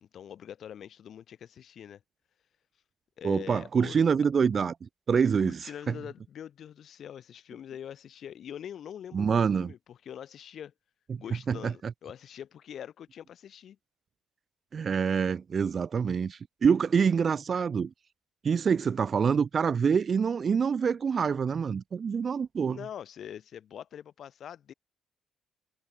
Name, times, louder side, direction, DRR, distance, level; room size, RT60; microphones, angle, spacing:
voice 1, 0.0-2.0 3.2-4.2 5.4-10.7 11.2-13.8 22.7-24.7, left 9 dB, 60° left, 1.7 m, -44 dB
voice 2, 3.2-5.9 9.1-9.7 11.1-11.2 11.5-11.7 14.7-17.9 18.4-22.8, right 6 dB, 45° right, 0.4 m, -26 dB
hypercardioid pair, 55°, 0 cm